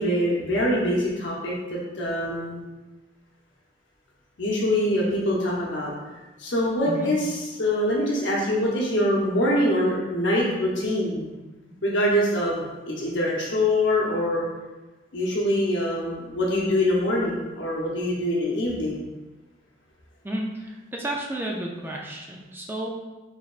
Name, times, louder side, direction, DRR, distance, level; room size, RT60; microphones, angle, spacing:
voice 1, 0.0-2.7 4.4-5.9 6.4-11.3 11.8-14.5 15.1-19.0, left 1 dB, 70° left, -4 dB, 0.8 m, -24 dB
voice 2, 20.2-22.9, right 1 dB, 10° right, -1 dB, 0.3 m, -32 dB
4.4 x 3.4 x 2.4 m, 1.2 s
head